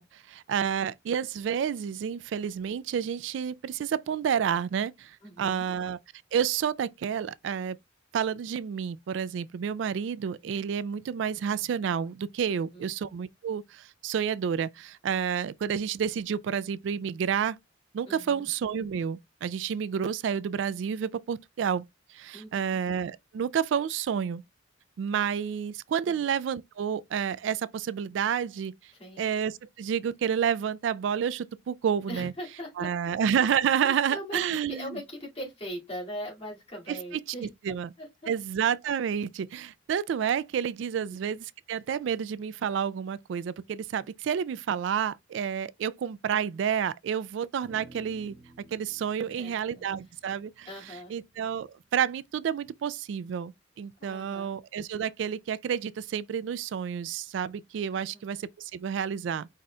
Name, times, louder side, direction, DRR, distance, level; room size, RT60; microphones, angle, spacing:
voice 1, 0.0-6.0 6.3-7.8 8.1-17.6 17.9-21.8 22.1-24.4 25.0-28.7 29.2-35.0 36.9-37.9 38.3-48.3 48.7-53.5 53.8-59.5, right 8 dB, 75° right, 0.3 m, -30 dB
voice 2, 5.2-5.7 12.5-12.9 18.1-18.5 22.3-22.8 26.1-26.2 28.9-29.3 32.1-32.9 33.8-37.5 38.0-38.3 40.9-41.2 49.2-49.9 50.7-51.1 54.0-54.6 57.9-58.2, equal, 30° left, 2.1 m, -41 dB
sound 1, 47.6-52.1, right 2 dB, 30° right, 1.3 m, -54 dB
4.9 x 4.1 x 2.2 m
head